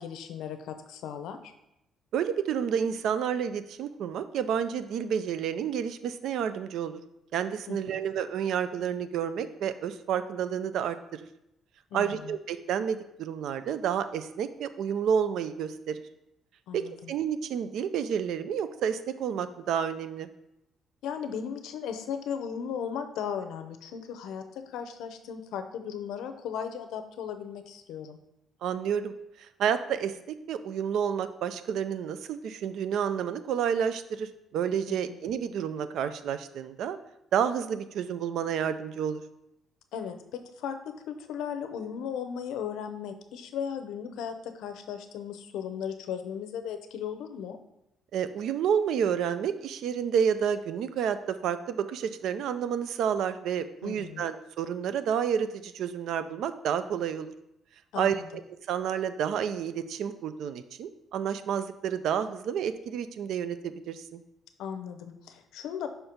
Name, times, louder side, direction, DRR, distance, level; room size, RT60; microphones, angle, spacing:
voice 1, 0.0-1.5 7.7-8.0 11.9-12.4 16.7-17.1 21.0-28.2 34.9-35.2 39.9-47.6 53.8-54.3 57.9-58.3 64.6-65.9, left 8 dB, 85° left, 8 dB, 0.6 m, -36 dB
voice 2, 2.1-7.0 7.3-11.3 11.9-16.0 16.7-20.3 28.6-30.2 30.5-37.0 37.3-39.2 48.1-57.3 58.0-58.4 58.7-64.2, right 8 dB, 65° right, 12 dB, 0.4 m, -30 dB
5.6 x 4.5 x 5.0 m, 0.84 s
cardioid pair, 175°, 0 cm